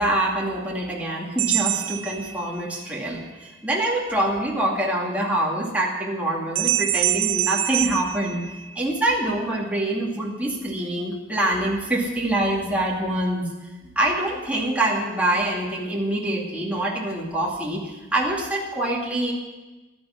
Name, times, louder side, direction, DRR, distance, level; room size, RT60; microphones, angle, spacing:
voice 1, 0.0-8.4 8.8-13.5 14.0-19.3, right 1 dB, 5° right, -3 dB, 2.4 m, -25 dB
sound 1, 1.4-2.9 6.6-9.1, right 14 dB, 90° right, 0.8 m, -26 dB
12.0 x 10.5 x 9.7 m, 1.2 s
head